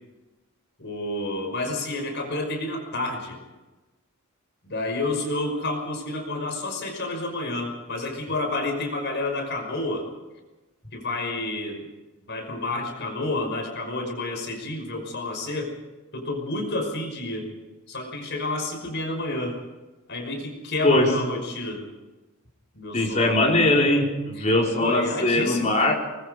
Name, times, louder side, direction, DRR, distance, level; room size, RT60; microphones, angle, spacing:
voice 1, 0.8-3.4 4.6-10.1 10.9-11.9 12.3-15.7 16.1-17.5 17.9-19.6 20.1-21.8 22.7-23.5 24.4-24.5 24.8-25.7, left 2 dB, 55° left, 3 dB, 5.7 m, -29 dB
voice 2, 20.8-21.2 22.9-25.9, left 1 dB, 35° left, -1 dB, 4.7 m, -21 dB
24.0 x 21.5 x 5.2 m, 1.1 s
head